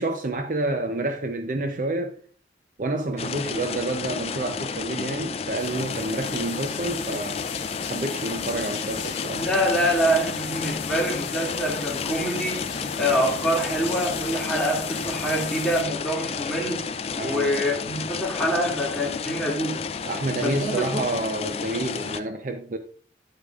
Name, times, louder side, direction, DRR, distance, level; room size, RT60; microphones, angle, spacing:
voice 1, 0.0-2.2 2.8-7.4 7.8-9.5 17.2-17.5 20.0-22.8, right 2 dB, 45° right, 0.6 m, -29 dB
sound 1, 3.2-22.2, left 5 dB, 35° left, 0.4 m, -32 dB
sound 2, 5.6-15.8, left 6 dB, 90° left, 0.9 m, -37 dB
voice 2, 9.3-16.8 17.2-19.8 20.4-21.1, equal, 5° left, 2.3 m, -25 dB
9.3 x 8.2 x 2.4 m
head